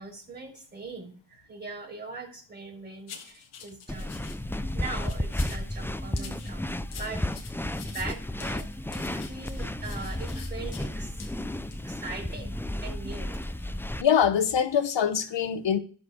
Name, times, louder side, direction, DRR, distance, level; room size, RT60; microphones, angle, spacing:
voice 1, 0.0-4.2 4.5-7.2 7.5-11.3 11.8-13.4 13.8-13.9, right 3 dB, 20° right, 4.2 m, -41 dB
sound 1, 3.1-4.4 4.8-5.7 6.2-10.9 11.2-11.3 11.7-11.8, left 7 dB, 90° left, 1.4 m, -46 dB
sound 2, 3.9-14.0, left 1 dB, 5° left, 0.5 m, -33 dB
voice 2, 14.0-15.8, left 8 dB, 65° left, 1.2 m, -23 dB
12.0 x 4.1 x 6.0 m
cardioid pair, 60°, 47 cm